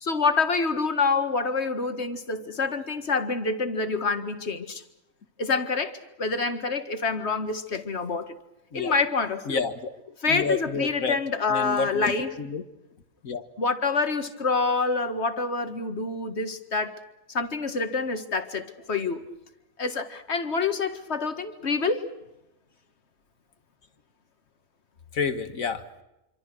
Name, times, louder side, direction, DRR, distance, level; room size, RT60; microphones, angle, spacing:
voice 1, 0.0-4.8 5.4-8.3 8.7-9.6 10.2-12.3 13.6-16.9 17.3-19.2 19.8-22.1, left 4 dB, 55° left, 9 dB, 2.0 m, -27 dB
voice 2, 9.5-11.2 11.5-12.6 13.2-13.4 25.1-25.8, left 4 dB, 85° left, 9 dB, 2.1 m, -30 dB
26.5 x 26.0 x 6.2 m, 0.94 s
omnidirectional pair, 1.4 m